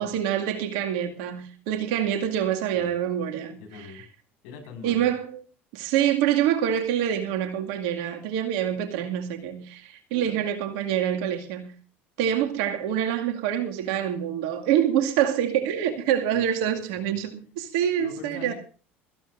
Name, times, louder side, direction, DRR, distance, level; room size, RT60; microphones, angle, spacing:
voice 1, 0.0-3.9 4.8-5.4 5.7-11.7 12.2-18.5, right 10 dB, 60° right, 2.2 m, -26 dB
voice 2, 2.7-3.3 3.6-4.0 4.4-5.1 10.1-10.4 16.3-17.1 18.0-18.5, left 5 dB, 65° left, 5.4 m, -44 dB
23.0 x 14.5 x 2.6 m
figure-of-eight pair, 65°, 6 cm